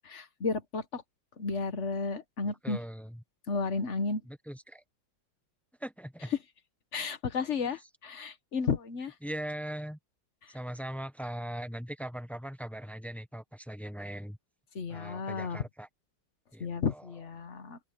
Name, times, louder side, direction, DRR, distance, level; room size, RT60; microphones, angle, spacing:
voice 1, 0.1-1.0 1.4-2.8 3.5-4.2 6.9-9.1 14.7-15.6 16.6-17.8, left 4 dB, 45° left, 1.3 m, -33 dB
voice 2, 2.4-3.2 4.3-4.8 5.8-6.3 7.6-7.7 9.2-10.0 10.5-14.4 14.9-15.9 16.5-17.1, right 1 dB, ahead, 0.5 m, -40 dB
open air
omnidirectional pair, 2.1 m